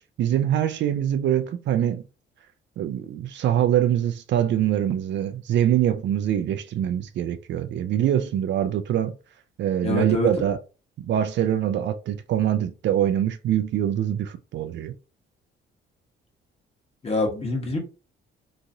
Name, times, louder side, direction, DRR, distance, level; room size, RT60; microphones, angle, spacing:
voice 1, 0.2-2.0 2.8-9.1 9.6-10.6 11.0-14.9, right 10 dB, 65° right, 0.4 m, -24 dB
voice 2, 9.8-10.3 17.0-17.8, left 2 dB, 30° left, 1.2 m, -25 dB
2.9 x 2.5 x 2.6 m
cardioid pair, 90°, 20 cm